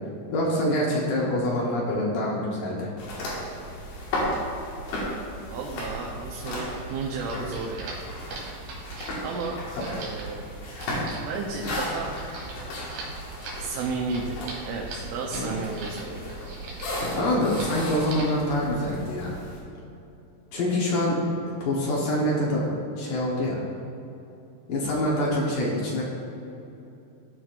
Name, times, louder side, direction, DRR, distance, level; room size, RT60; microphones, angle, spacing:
voice 1, 0.3-2.9 15.3-15.5 17.0-19.4 20.5-21.3 21.6-22.7 23.0-23.6 24.7-26.0, left 1 dB, 75° left, -4 dB, 1.9 m, -25 dB
sound 1, 3.0-19.6, equal, 60° left, 3.2 m, -35 dB
voice 2, 5.5-8.1 9.2-10.5 11.2-12.2 13.6-16.4, right 4 dB, 85° right, -3 dB, 3.2 m, -33 dB
sound 2, 6.9-16.0 16.3-17.1 17.4-17.7 18.0-18.4, right 3 dB, 60° right, 3.0 m, -41 dB
15.5 x 6.0 x 2.5 m, 2.8 s
omnidirectional pair, 5.6 m